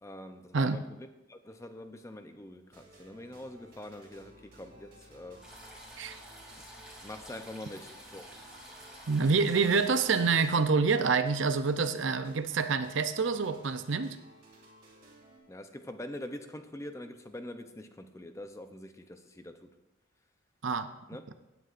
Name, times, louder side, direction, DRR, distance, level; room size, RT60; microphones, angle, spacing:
voice 1, 0.0-5.4 6.6-6.7 7.0-8.3 15.5-19.8 21.1-21.2, left 1 dB, 15° left, 7 dB, 0.6 m, -44 dB
sound 1, 2.7-15.4, right 1 dB, 45° right, 2.8 m, -57 dB
sound 2, 5.4-10.6, right 1 dB, 5° right, 2.9 m, -50 dB
voice 2, 9.1-14.2 20.6-20.9, right 4 dB, 65° right, 10 dB, 0.6 m, -27 dB
17.0 x 9.3 x 2.5 m, 0.96 s
head